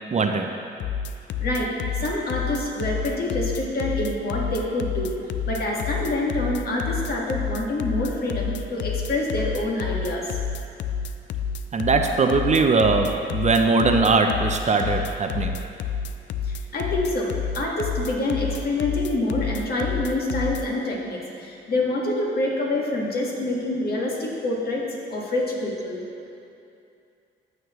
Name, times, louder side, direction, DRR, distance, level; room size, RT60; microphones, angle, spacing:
voice 1, 0.1-0.5 11.7-15.5, right 4 dB, 35° right, 4 dB, 0.6 m, -20 dB
sound 1, 0.8-20.6, left 6 dB, 70° left, 0.4 m, -29 dB
voice 2, 1.4-1.7 2.0-5.1 5.5-10.3 16.5-17.3 17.5-24.8 25.1-26.0, left 2 dB, 50° left, -2 dB, 1.9 m, -26 dB
14.5 x 6.4 x 3.1 m, 2.6 s
cardioid pair, 90°, 20 cm